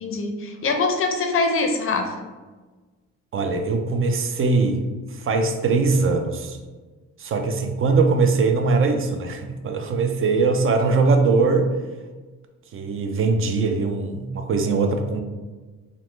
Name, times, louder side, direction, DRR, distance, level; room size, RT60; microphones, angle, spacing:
voice 1, 0.0-2.1 10.8-10.9, left 3 dB, 45° left, 5 dB, 0.5 m, -23 dB
voice 2, 3.3-4.8 5.1-6.6 7.2-11.7 12.7-15.2, right 4 dB, 45° right, 5 dB, 0.4 m, -21 dB
2.9 x 2.0 x 3.1 m, 1.3 s
cardioid pair, 90°, 30 cm